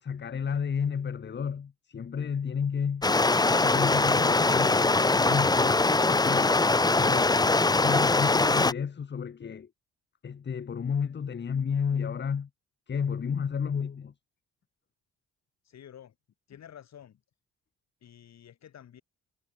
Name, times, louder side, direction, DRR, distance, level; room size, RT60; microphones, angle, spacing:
voice 1, 0.0-3.1 3.4-6.5 7.0-9.7 10.2-12.5 12.9-14.1, left 7 dB, 35° left, 1.3 m, -32 dB
Stream, 3.0-8.7, left 3 dB, 15° left, 0.8 m, -22 dB
voice 2, 15.6-16.1 16.5-17.2 18.0-19.0, left 9 dB, 60° left, 3.5 m, -50 dB
cardioid pair, 90°, 30 cm